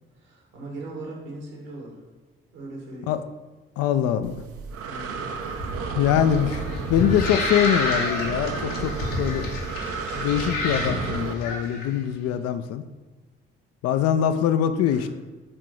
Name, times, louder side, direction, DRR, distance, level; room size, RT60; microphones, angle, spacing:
voice 1, 0.2-2.0 2.5-3.1 4.8-5.2 14.9-15.1, right 2 dB, 70° right, -1 dB, 1.8 m, -39 dB
voice 2, 3.8-4.3 5.9-6.6 6.9-9.5 10.2-12.8 13.8-15.1, left 9 dB, 55° left, 10 dB, 0.5 m, -23 dB
Breathing, 4.2-11.3, right 5 dB, 50° right, 0.6 m, -32 dB
sound 1, 5.5-11.8, left 2 dB, 75° left, 1.1 m, -30 dB
6.0 x 3.7 x 4.7 m, 1.2 s
figure-of-eight pair, 40°, 29 cm